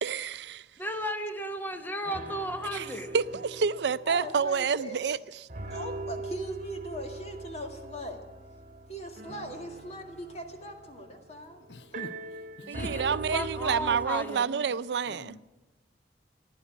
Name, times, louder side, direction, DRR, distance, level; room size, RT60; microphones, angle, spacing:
voice 1, 0.0-0.7 2.7-2.9 3.1-5.5 12.7-15.4, right 6 dB, 70° right, 0.4 m, -29 dB
voice 2, 0.8-3.1 12.6-14.6, equal, 10° left, 1.0 m, -35 dB
sound 1, 1.7-1.8 2.0-5.2 5.5-14.1, right 2 dB, 45° right, 1.7 m, -41 dB
voice 3, 4.1-5.0 5.7-8.2 8.9-11.6, equal, 40° left, 2.1 m, -40 dB
voice 4, 11.7-12.1 12.6-12.9 15.1-15.4, left 2 dB, 80° left, 0.8 m, -43 dB
15.5 x 11.0 x 8.3 m
head